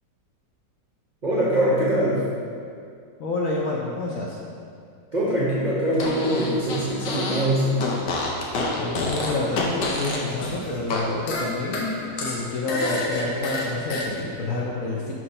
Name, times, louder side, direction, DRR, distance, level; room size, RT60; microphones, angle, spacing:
voice 1, 1.2-2.2 5.1-7.9, right 1 dB, 45° right, -7 dB, 0.6 m, -23 dB
voice 2, 3.2-4.4 8.8-15.1, left 2 dB, 70° left, -3 dB, 0.8 m, -28 dB
Fart, 5.9-7.5 7.8-11.0 11.3-14.1, left 2 dB, 85° left, 1.5 m, -28 dB
6.0 x 3.2 x 5.3 m, 2.3 s
omnidirectional pair, 1.9 m